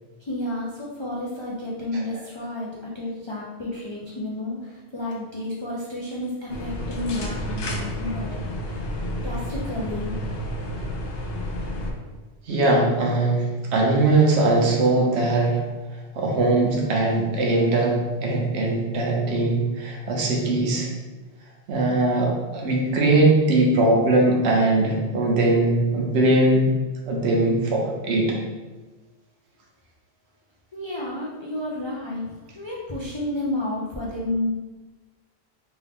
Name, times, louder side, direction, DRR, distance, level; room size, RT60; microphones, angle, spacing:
voice 1, 0.2-8.8 9.2-10.1 30.7-34.5, left 1 dB, 45° left, -6 dB, 0.3 m, -31 dB
sound 1, 6.5-11.9, equal, 70° left, 0.8 m, -30 dB
voice 2, 12.5-15.6 16.1-20.9 21.7-26.7 27.1-28.4, right 2 dB, 75° right, -1 dB, 1.0 m, -20 dB
3.5 x 2.4 x 3.5 m, 1.2 s
omnidirectional pair, 1.1 m